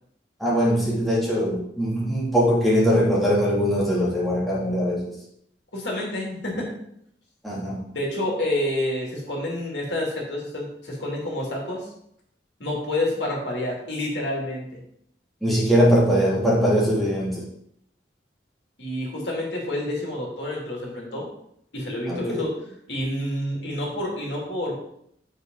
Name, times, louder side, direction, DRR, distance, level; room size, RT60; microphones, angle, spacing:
voice 1, 0.4-5.0 7.4-7.9 15.4-17.4 22.1-22.5, equal, ahead, -7 dB, 2.7 m, -21 dB
voice 2, 5.7-6.7 7.9-11.9 12.6-14.8 18.8-21.3 21.7-22.5 22.9-24.7, left 1 dB, 75° left, -2 dB, 2.8 m, -28 dB
8.2 x 6.6 x 3.9 m, 0.72 s
head